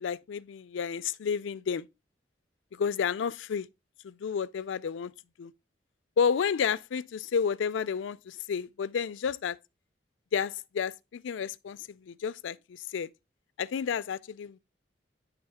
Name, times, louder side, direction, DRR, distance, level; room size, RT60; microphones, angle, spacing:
voice 1, 0.0-1.9 2.7-3.7 4.0-5.1 5.4-5.5 6.2-9.6 10.3-13.1 13.6-14.6, left 6 dB, 85° left, 0.4 m, -31 dB
9.7 x 3.5 x 3.5 m
head